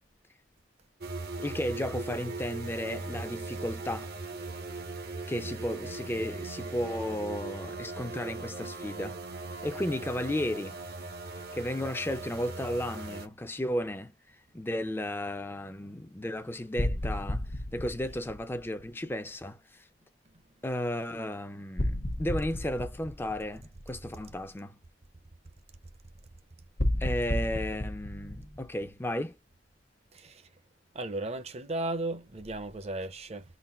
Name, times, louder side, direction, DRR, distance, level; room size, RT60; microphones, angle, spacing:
sound 1, 1.0-13.3, right 3 dB, 60° right, 1.0 m, -39 dB
voice 1, 1.4-4.1 5.3-9.2 9.6-10.8 11.5-14.1 14.5-17.4 17.7-19.8 20.6-24.8 27.0-29.4, left 1 dB, 15° left, 0.6 m, -34 dB
sound 2, 16.8-18.9 21.8-23.8 26.8-29.3, left 1 dB, 55° left, 1.1 m, -32 dB
voice 2, 28.2-28.5 30.1-30.4 30.9-33.4, right 2 dB, 35° right, 0.8 m, -35 dB
4.0 x 2.1 x 4.2 m
head